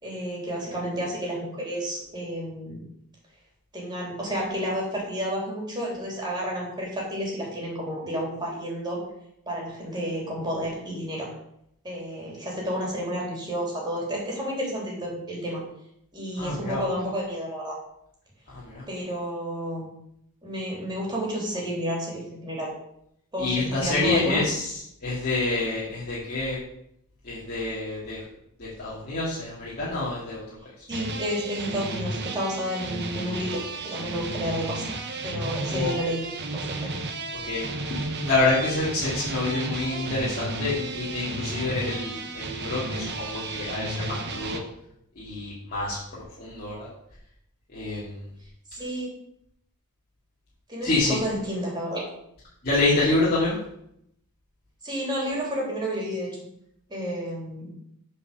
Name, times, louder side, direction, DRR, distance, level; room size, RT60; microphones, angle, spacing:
voice 1, 0.0-2.8 3.7-9.0 9.5-11.3 11.8-15.6 16.1-17.7 18.9-19.9 20.4-22.7 23.3-24.4 30.9-34.9 35.2-36.2 36.5-36.9 48.7-49.1 50.7-52.0 54.8-56.3 56.9-57.7, equal, 20° right, -3 dB, 3.1 m, -31 dB
voice 2, 16.4-16.8 18.5-18.8 23.4-24.7 25.0-26.6 27.2-28.2 28.6-30.4 35.7-35.9 37.3-37.7 38.0-44.6 45.2-46.9 47.7-48.2 50.8-51.2 52.6-53.6, left 2 dB, 45° left, -9 dB, 2.3 m, -27 dB
sound 1, 30.9-44.6, right 2 dB, 50° right, 1.0 m, -33 dB
7.4 x 4.9 x 6.6 m, 0.76 s
head